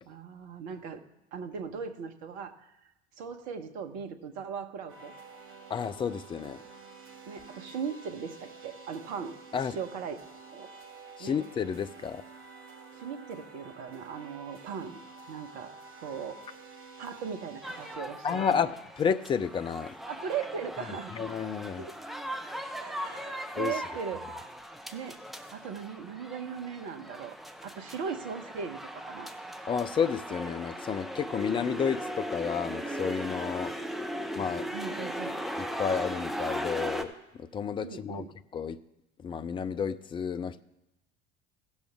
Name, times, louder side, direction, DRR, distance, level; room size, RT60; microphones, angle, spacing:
voice 1, 0.0-1.0 1.3-2.7 3.2-5.1 7.3-10.2 10.5-10.7 11.2-11.4 12.9-15.0 15.3-16.4 17.0-18.7 20.1-21.1 21.8-22.1 22.8-24.2 24.9-25.2 25.5-27.4 27.6-29.3 34.7-35.4 37.8-38.3, right 6 dB, 50° right, 7 dB, 1.1 m, -38 dB
sound 1, 4.9-18.0, right 4 dB, 35° right, 2.0 m, -50 dB
voice 2, 5.7-6.6 9.5-9.8 11.2-12.2 18.2-19.9 20.9-21.9 23.6-23.7 29.7-33.7 34.4-34.7 35.6-38.2 38.5-38.8 39.2-40.6, left 7 dB, 15° left, 12 dB, 0.3 m, -31 dB
sound 2, 17.6-37.0, equal, ahead, 0.8 m, -38 dB
17.0 x 6.3 x 3.6 m, 0.93 s
figure-of-eight pair, 70°, 34 cm